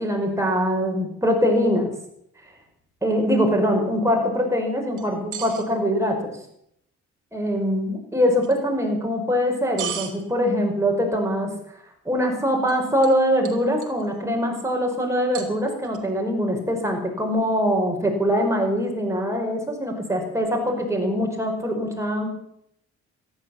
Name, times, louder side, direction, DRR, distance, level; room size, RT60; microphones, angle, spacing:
voice 1, 0.0-1.9 3.0-6.3 7.3-11.5 12.1-22.3, equal, 10° right, 2 dB, 5.3 m, -23 dB
sound 1, 5.0-5.6 8.4-8.5 9.8-10.1 12.7-12.8 13.0-13.2 13.4-14.1 15.3-16.0, right 10 dB, 80° right, 2.6 m, -33 dB
14.0 x 11.5 x 8.0 m, 0.74 s
cardioid pair, 90°, 30 cm